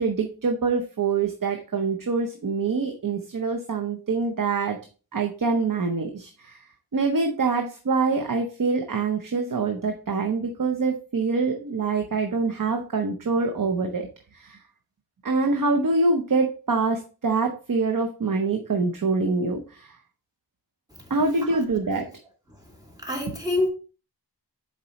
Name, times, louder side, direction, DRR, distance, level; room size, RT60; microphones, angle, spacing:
voice 1, 0.0-4.8 5.1-6.6 6.9-14.6 15.2-19.9 21.1-22.1, right 4 dB, 55° right, 0.8 m, -25 dB
voice 2, 23.0-23.7, left 2 dB, 10° right, 2.3 m, -26 dB
6.9 x 4.5 x 3.0 m
wide cardioid pair, 70°, 39 cm